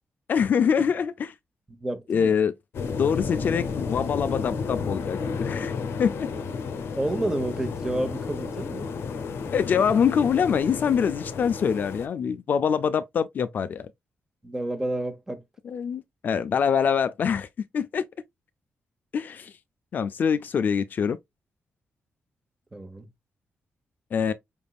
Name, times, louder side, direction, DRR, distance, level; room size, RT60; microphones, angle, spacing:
voice 1, 0.3-1.3 2.1-2.5 2.9-6.3 9.5-13.9 15.7-17.5 17.7-18.1 19.1-19.5 19.9-21.2 24.1-24.3, left 7 dB, 45° left, 0.3 m, -24 dB
voice 2, 1.8-2.4 7.0-8.9 14.4-15.4 22.7-23.1, right 1 dB, 10° right, 0.9 m, -30 dB
sound 1, 2.7-12.1, left 5 dB, 70° left, 0.7 m, -32 dB
5.0 x 3.5 x 2.3 m
wide cardioid pair, 155°, 4 cm